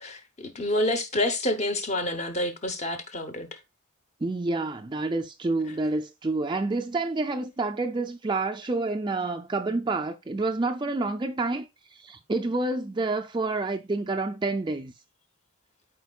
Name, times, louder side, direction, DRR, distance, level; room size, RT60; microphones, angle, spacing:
voice 1, 0.0-3.6, left 1 dB, 30° left, 0.9 m, -28 dB
voice 2, 4.2-14.9, right 3 dB, 20° right, 0.4 m, -28 dB
12.5 x 4.4 x 2.3 m
head